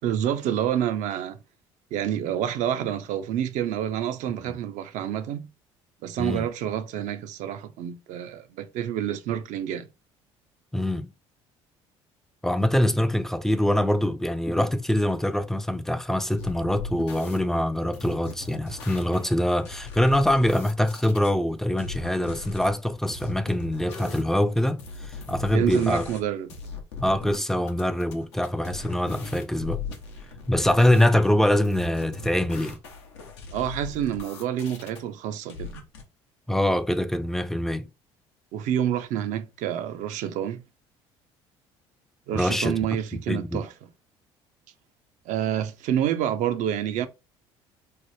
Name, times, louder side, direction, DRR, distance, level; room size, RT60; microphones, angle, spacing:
voice 1, 0.0-1.4 1.9-5.5 6.0-9.9 25.5-26.5 33.5-35.7 38.5-40.6 42.3-43.9 45.3-47.1, right 10 dB, 60° right, 0.4 m, -28 dB
voice 2, 10.7-11.1 12.4-26.0 27.0-29.8 30.5-32.8 36.5-37.9 42.3-42.7 43.3-43.6, left 1 dB, 5° left, 0.4 m, -24 dB
sound 1, 16.4-17.4 17.9-21.3 21.8-22.7 23.1-24.3 24.6-26.2 26.5-27.4 27.7-31.1 31.6-35.0 35.5-36.0, left 4 dB, 85° left, 0.6 m, -39 dB
3.1 x 2.0 x 3.0 m
hypercardioid pair, 65°, 14 cm